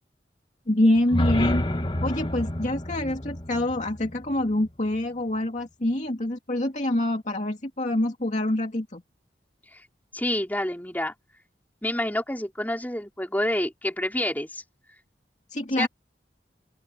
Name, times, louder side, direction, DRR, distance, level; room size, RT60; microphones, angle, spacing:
voice 1, 0.7-1.6 2.0-9.0 15.5-15.9, left 1 dB, 45° left, 2.4 m, -26 dB
sound 1, 1.0-5.0, left 1 dB, 30° left, 1.6 m, -29 dB
voice 2, 10.1-11.1 11.8-14.6 15.8-15.9, left 1 dB, 10° left, 4.7 m, -28 dB
open air
head